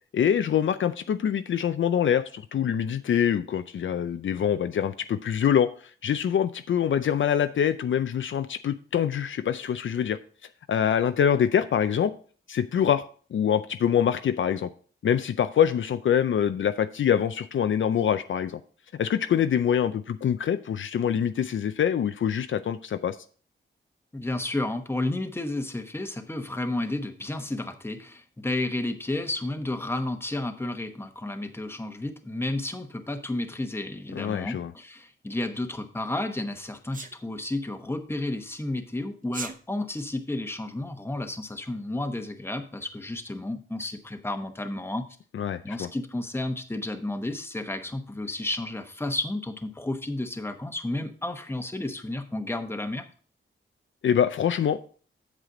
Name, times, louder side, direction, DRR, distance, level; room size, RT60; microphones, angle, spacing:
voice 1, 0.1-10.2 10.7-12.1 12.5-13.0 13.3-14.7 15.0-18.6 19.0-23.2 34.1-34.7 45.3-45.9 54.0-54.9, left 8 dB, 65° left, 10 dB, 0.5 m, -25 dB
voice 2, 24.1-45.1 45.6-53.0, left 2 dB, 10° left, 7 dB, 1.0 m, -32 dB
Sneeze, 36.9-37.1 39.2-39.6, right 5 dB, 40° right, 0.7 m, -36 dB
8.2 x 7.5 x 3.8 m, 0.42 s
wide cardioid pair, 100°, 21 cm